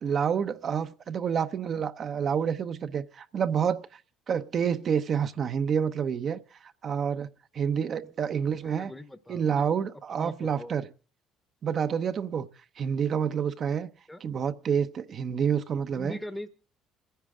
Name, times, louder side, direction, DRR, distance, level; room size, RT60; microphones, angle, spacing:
voice 1, 0.0-4.0 4.3-6.4 6.8-7.3 7.5-8.9 9.3-10.8 11.6-12.5 12.8-13.9 14.2-16.2, right 7 dB, 50° right, 0.8 m, -28 dB
voice 2, 8.6-9.7 10.1-10.8 14.1-14.2 15.9-16.5, left 1 dB, 10° left, 0.9 m, -41 dB
29.5 x 10.5 x 3.6 m
supercardioid pair, 75°, 0 cm